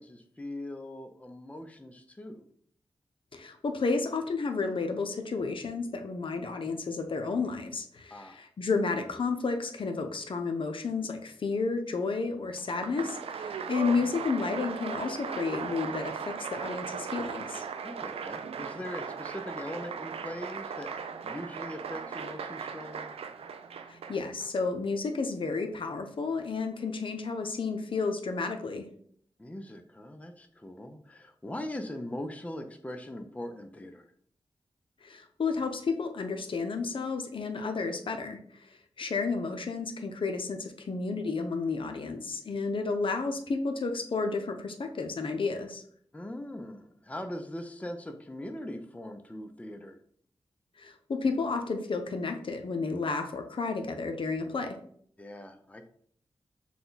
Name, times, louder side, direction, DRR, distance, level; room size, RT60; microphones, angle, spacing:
voice 1, 0.0-2.4 8.1-8.4 13.8-14.1 17.8-20.9 21.2-23.1 29.4-34.1 46.1-50.0 55.2-55.9, left 1 dB, 15° left, 6 dB, 0.5 m, -41 dB
voice 2, 3.3-17.6 23.9-28.9 35.0-45.8 50.8-54.8, left 4 dB, 60° left, 5 dB, 0.6 m, -32 dB
Applause, 12.6-24.5, right 6 dB, 85° right, 0.4 m, -38 dB
5.9 x 2.2 x 4.0 m, 0.62 s
cardioid pair, 65°, 10 cm